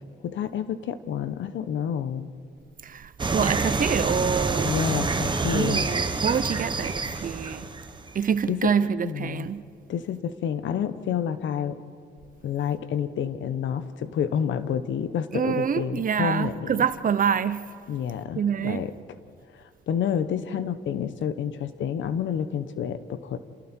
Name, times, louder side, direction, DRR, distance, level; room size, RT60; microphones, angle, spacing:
voice 1, 0.2-2.3 4.6-5.9 8.5-8.7 9.0-9.5 9.9-11.8 12.4-16.8 17.9-18.9 19.5-23.4, left 8 dB, 70° left, 1.2 m, -29 dB
voice 2, 2.8-4.7 5.5-7.7 8.1-9.6 15.3-17.7 18.3-18.8, right 7 dB, 45° right, 0.9 m, -26 dB
sound 1, 3.2-8.3, right 3 dB, 25° right, 1.5 m, -27 dB
28.5 x 27.5 x 4.5 m
cardioid pair, 90°, 20 cm